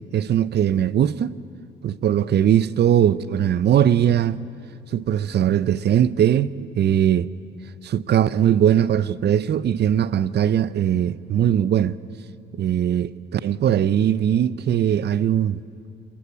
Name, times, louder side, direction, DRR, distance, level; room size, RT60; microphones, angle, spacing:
voice 1, 0.1-1.3 1.8-4.4 4.9-7.3 7.8-11.9 12.6-15.6, right 10 dB, 55° right, 0.7 m, -20 dB
27.0 x 21.5 x 8.6 m
cardioid pair, 90°, 20 cm